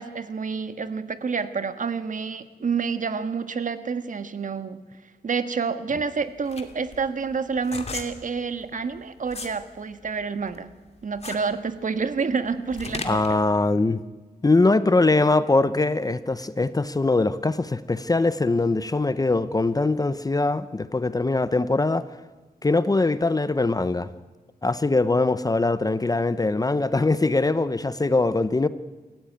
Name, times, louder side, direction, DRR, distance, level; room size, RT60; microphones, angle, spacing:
voice 1, 0.0-4.8 5.2-10.7 11.0-13.4, right 5 dB, 50° right, 1.6 m, -28 dB
sound 1, 6.0-9.6 10.0-13.4, left 4 dB, 40° left, 2.4 m, -37 dB
voice 2, 13.0-14.0 14.4-22.0 22.6-24.1 24.6-28.7, left 3 dB, 20° left, 0.8 m, -22 dB
27.0 x 15.0 x 9.3 m
wide cardioid pair, 120°, 17 cm